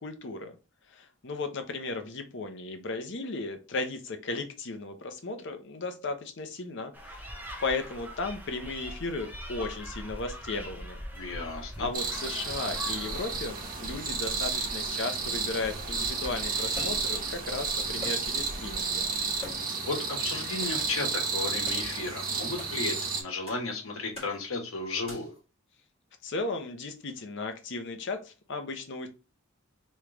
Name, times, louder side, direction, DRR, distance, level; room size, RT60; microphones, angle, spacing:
voice 1, 0.0-0.5 0.9-7.3 7.6-11.0 11.8-19.0 26.2-29.1, left 3 dB, 55° left, 7 dB, 0.7 m, -35 dB
sound 1, 6.9-19.5, equal, 10° right, 0.8 m, -43 dB
voice 2, 11.1-11.9 19.9-25.3, left 3 dB, 75° left, 2 dB, 1.2 m, -34 dB
sound 2, 11.9-23.2, right 5 dB, 40° right, 1.0 m, -32 dB
sound 3, 16.7-17.2 18.0-18.4 18.7-18.8 19.4-19.8 20.6-20.8 21.6-21.9 22.6-22.7 23.5-23.7 24.1-24.4 25.0-25.4, left 3 dB, 25° left, 2.2 m, -44 dB
3.7 x 3.2 x 3.3 m, 0.31 s
head